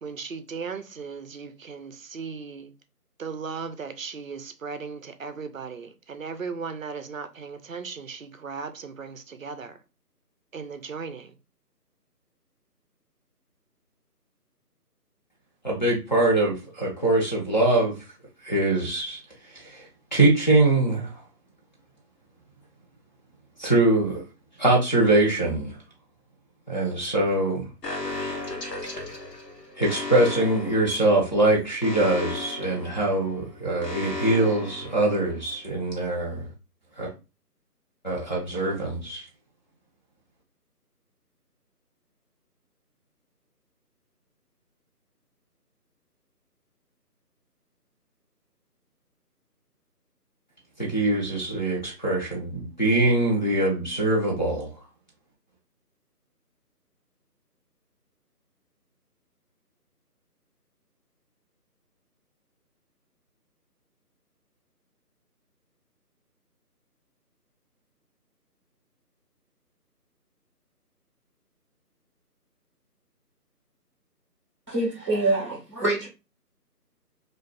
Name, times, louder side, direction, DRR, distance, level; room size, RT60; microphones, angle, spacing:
voice 1, 0.0-2.7 3.2-9.8 10.5-11.3, right 5 dB, 55° right, 0.5 m, -37 dB
voice 2, 15.6-18.1 18.4-21.2 23.6-24.2 24.6-25.8 26.7-27.7 29.8-36.5 37.0-37.1 38.0-39.2 50.8-54.8, right 2 dB, 30° left, 0.8 m, -23 dB
Alarm, 27.8-35.6, left 2 dB, 85° left, 1.0 m, -36 dB
voice 3, 74.7-76.1, right 2 dB, 20° right, 0.8 m, -25 dB
2.4 x 2.3 x 3.3 m
figure-of-eight pair, 165°, 48 cm